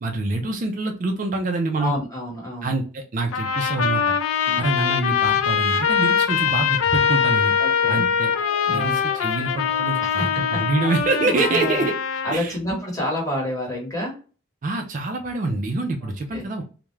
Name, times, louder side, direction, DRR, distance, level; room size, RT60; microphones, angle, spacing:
voice 1, 0.0-1.9 2.6-4.2 4.6-7.5 7.9-8.3 8.7-11.9 12.3-12.6 14.6-16.6, right 2 dB, 40° right, 4 dB, 0.3 m, -25 dB
voice 2, 1.8-2.7 4.4-4.7 6.3-6.5 7.6-8.1 8.7-8.9 10.0-10.3 10.8-10.9 11.5-11.9 12.2-14.1 16.0-16.5, left 1 dB, 15° left, -2 dB, 0.9 m, -29 dB
Trumpet, 3.3-12.4, left 7 dB, 80° left, 0.4 m, -22 dB
sound 1, 8.3-12.2, left 1 dB, 50° left, 1.0 m, -43 dB
2.3 x 2.0 x 3.0 m, 0.36 s
head